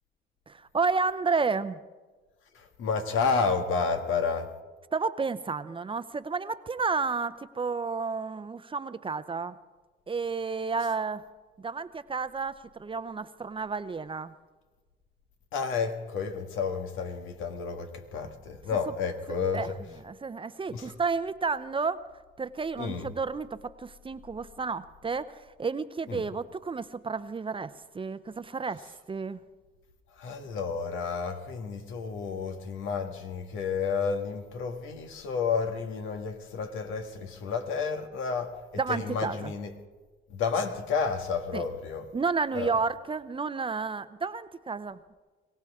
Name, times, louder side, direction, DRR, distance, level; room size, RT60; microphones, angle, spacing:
voice 1, 0.5-1.8 4.9-9.6 10.1-11.2 11.6-14.3 19.5-19.7 20.0-22.0 22.4-28.8 29.1-29.4 38.8-39.5 41.5-41.7 42.1-45.0, right 4 dB, 25° right, 0.6 m, -31 dB
voice 2, 2.5-4.5 15.5-19.7 20.7-20.9 22.8-23.1 26.1-26.2 30.2-38.5 38.9-39.7 40.3-42.0 42.5-42.7, left 5 dB, 85° left, 1.6 m, -31 dB
22.5 x 17.5 x 3.6 m
cardioid pair, 90°, 20 cm